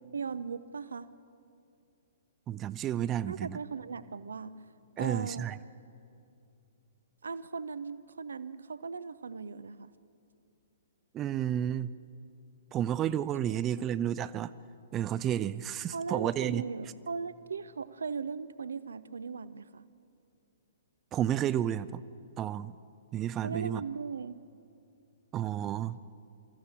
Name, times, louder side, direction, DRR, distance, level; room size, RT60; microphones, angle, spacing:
voice 1, 0.1-1.1 3.3-4.5 5.0-5.5 7.2-9.9 13.8-13.9 15.9-19.9 23.4-24.4, right 5 dB, 65° right, 15 dB, 0.6 m, -38 dB
voice 2, 2.5-3.6 5.0-5.6 11.1-11.9 12.7-14.5 14.9-16.6 21.1-22.0 22.4-22.7 23.1-23.8 25.3-26.0, right 11 dB, 20° right, 15 dB, 0.4 m, -31 dB
23.0 x 14.0 x 8.3 m, 2.5 s
figure-of-eight pair, 115°, 0 cm